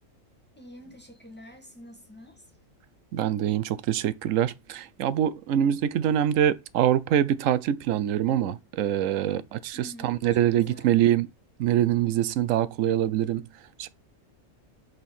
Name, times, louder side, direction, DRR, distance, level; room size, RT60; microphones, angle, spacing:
voice 1, 0.5-2.6 9.7-10.2 10.7-10.9, equal, 10° left, 1.6 m, -47 dB
voice 2, 3.1-11.3 11.6-13.9, right 11 dB, 80° right, 1.0 m, -24 dB
5.4 x 4.3 x 5.3 m
omnidirectional pair, 1.4 m